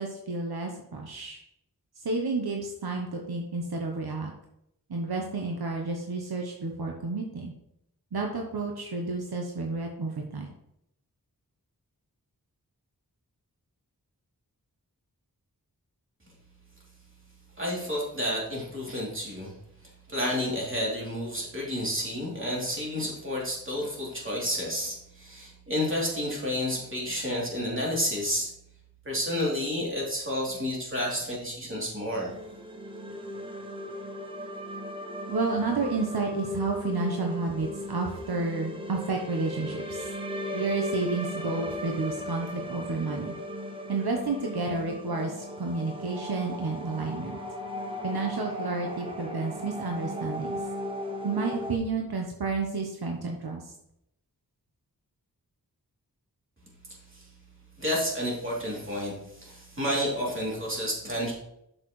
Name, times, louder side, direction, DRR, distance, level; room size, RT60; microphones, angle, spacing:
voice 1, 0.0-1.4 2.0-4.3 4.9-7.5 8.1-10.5 35.3-40.1 40.5-43.3 43.9-47.4 48.0-50.6 51.2-53.7, right 3 dB, 80° right, 1 dB, 1.0 m, -31 dB
voice 2, 17.6-19.5 20.1-28.5 29.0-32.3 57.1-57.2 57.8-61.3, equal, 35° right, -5 dB, 3.0 m, -30 dB
sound 1, 32.1-51.8, left 1 dB, 15° right, 1.1 m, -37 dB
7.8 x 6.6 x 3.2 m, 0.79 s
wide cardioid pair, 75°, 37 cm